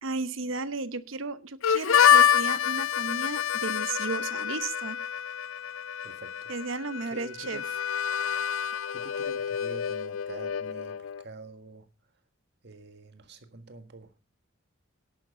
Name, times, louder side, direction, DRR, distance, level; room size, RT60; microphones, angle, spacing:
voice 1, 0.0-5.0 6.5-7.6, right 3 dB, 80° right, 0.9 m, -34 dB
Harmonica, 1.6-11.2, left 9 dB, 80° left, 0.5 m, -27 dB
voice 2, 6.0-6.5 7.1-7.6 8.9-11.9 12.6-14.1, right 2 dB, 60° right, 1.7 m, -46 dB
11.0 x 8.8 x 5.6 m
head